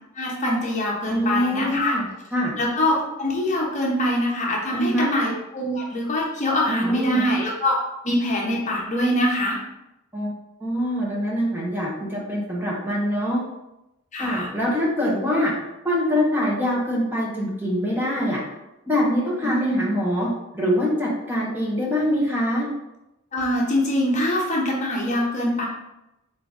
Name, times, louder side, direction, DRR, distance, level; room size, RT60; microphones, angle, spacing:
voice 1, 0.1-2.0 2.6-7.8 8.0-9.6 14.1-14.5 19.4-19.9 23.3-25.7, left 1 dB, 35° left, -3 dB, 0.8 m, -24 dB
voice 2, 1.1-2.0 2.3-2.5 4.7-5.1 6.7-7.2 10.1-10.3 10.6-13.4 14.2-15.5 15.8-18.4 18.9-20.3 20.5-22.7, equal, 10° right, -4 dB, 0.7 m, -24 dB
4.0 x 3.7 x 3.5 m, 0.93 s
head